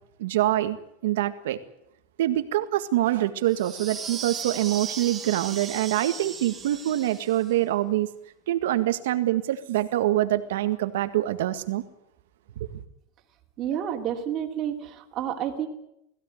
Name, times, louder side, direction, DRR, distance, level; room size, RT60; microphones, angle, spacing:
voice 1, 0.2-0.8 1.0-1.6 2.2-8.1 8.5-11.8 12.6-12.7, right 14 dB, 80° right, 1.8 m, -25 dB
sound 1, 3.5-7.5, right 6 dB, 15° right, 2.2 m, -37 dB
voice 2, 13.6-15.7, right 9 dB, 30° right, 2.9 m, -30 dB
20.0 x 16.0 x 9.4 m
supercardioid pair, 155°, 0 cm